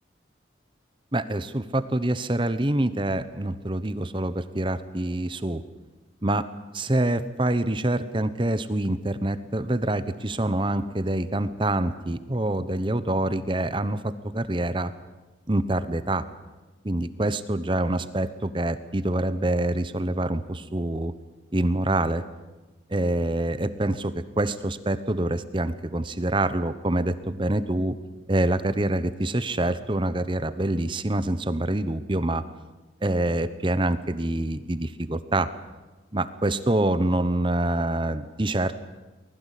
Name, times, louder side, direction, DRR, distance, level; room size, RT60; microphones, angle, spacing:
voice 1, 1.1-5.6 6.2-6.5 6.7-14.9 15.5-16.2 16.8-21.1 21.5-22.2 22.9-28.0 28.3-32.4 33.0-35.5 36.1-38.7, right 1 dB, 25° right, 13 dB, 0.9 m, -26 dB
24.5 x 20.0 x 8.4 m, 1.2 s
head